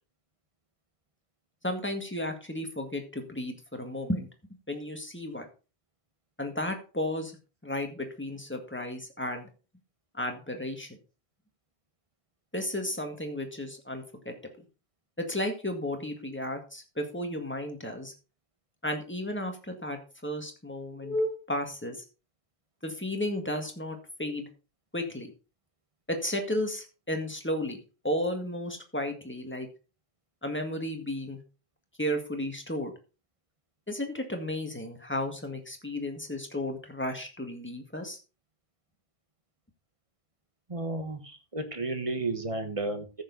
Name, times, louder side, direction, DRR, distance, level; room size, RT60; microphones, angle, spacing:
voice 1, 1.6-4.3 4.7-5.5 6.4-7.3 7.6-9.5 10.1-10.9 12.5-14.3 15.2-18.1 18.8-22.0 22.8-24.5 24.9-25.3 26.1-27.8 28.0-29.7 30.4-31.4 32.0-32.9 33.9-38.2, left 1 dB, 10° left, 4 dB, 1.8 m, -33 dB
voice 2, 40.7-43.2, right 2 dB, 30° right, 7 dB, 1.5 m, -33 dB
14.0 x 6.6 x 4.0 m, 0.33 s
omnidirectional pair, 1.1 m